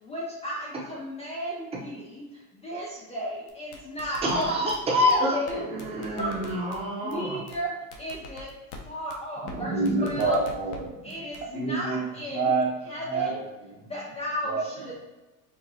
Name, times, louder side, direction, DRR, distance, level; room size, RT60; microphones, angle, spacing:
voice 1, 0.0-4.5 5.1-5.6 6.2-6.6 7.0-7.7 8.0-8.5 8.9-9.7 10.0-10.4 11.0-12.5 12.9-13.4 13.8-14.9, equal, 15° left, -4 dB, 0.3 m, -34 dB
sound 1, 3.5-4.8 5.1-5.2 5.5-5.6 5.8-6.8 7.1-7.2 7.5-7.6 7.9-8.8 9.1-9.2 9.5-9.6 9.8-10.8 11.1-11.4, left 4 dB, 60° left, 0.8 m, -43 dB
voice 2, 4.2-7.4, left 1 dB, 15° right, -3 dB, 0.8 m, -26 dB
voice 3, 9.4-13.3 14.4-14.9, right 3 dB, 80° right, -1 dB, 1.2 m, -28 dB
4.8 x 2.4 x 2.6 m, 1.1 s
supercardioid pair, 120°, 46 cm